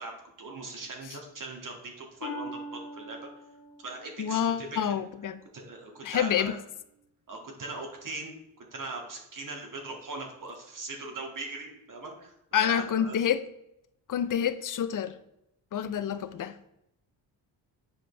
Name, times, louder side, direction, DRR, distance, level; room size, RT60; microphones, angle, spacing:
voice 1, 0.0-3.3 3.8-4.8 5.5-6.6 7.3-12.3 12.6-13.2, right 3 dB, 45° right, 1 dB, 2.0 m, -40 dB
Harp, 2.2-5.9 6.5-6.9 7.5-7.6, left 1 dB, 85° left, 1.6 m, -43 dB
voice 2, 4.2-5.4 6.0-6.5 12.5-13.4 14.1-15.2 15.7-16.6, left 9 dB, 45° left, 13 dB, 0.6 m, -28 dB
7.4 x 5.0 x 3.3 m, 0.80 s
supercardioid pair, 65°, 44 cm